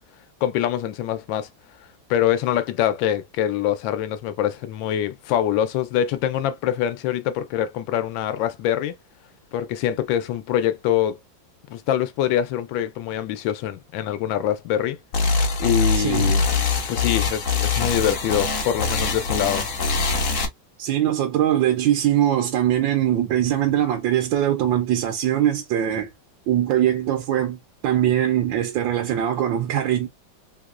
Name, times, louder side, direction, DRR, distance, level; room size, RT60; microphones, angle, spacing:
voice 1, 0.4-1.5 2.1-8.9 9.5-11.2 11.7-15.0 15.6-16.5 16.9-19.7, left 11 dB, 85° left, 1.3 m, -24 dB
sound 1, 15.1-20.5, left 4 dB, 50° left, 1.1 m, -23 dB
voice 2, 15.9-16.3 20.8-26.1 26.5-30.1, right 11 dB, 85° right, 1.4 m, -22 dB
3.5 x 2.9 x 2.4 m
omnidirectional pair, 2.0 m